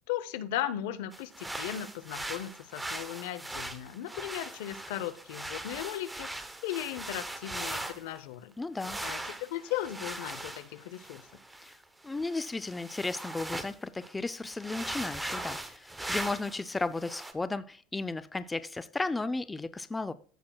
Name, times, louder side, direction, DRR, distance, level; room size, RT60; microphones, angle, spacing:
voice 1, 0.1-6.3 6.6-8.5 9.0-11.3, left 12 dB, 80° left, 0.7 m, -37 dB
sound 1, 1.1-8.2 8.8-13.8 14.0-14.1 14.5-16.6 17.0-17.3, right 1 dB, 5° right, 0.8 m, -40 dB
voice 2, 8.6-9.0 11.6-11.7 12.0-20.1, left 3 dB, 10° left, 0.4 m, -34 dB
14.5 x 5.9 x 2.3 m
supercardioid pair, 135°, 0 cm